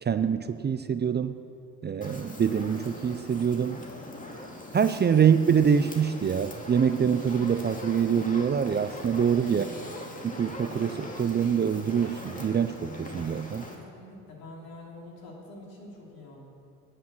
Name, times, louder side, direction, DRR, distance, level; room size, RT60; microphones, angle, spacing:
voice 1, 0.0-1.4 1.8-3.8 4.7-9.7 10.2-13.6, right 7 dB, 25° right, 11 dB, 0.5 m, -25 dB
Fire, 2.0-13.8, left 1 dB, 20° left, 2.3 m, -41 dB
voice 2, 9.4-9.9 13.7-16.5, left 2 dB, 70° left, -2 dB, 3.2 m, -46 dB
9.4 x 8.7 x 9.0 m, 2.5 s
hypercardioid pair, 60°, 38 cm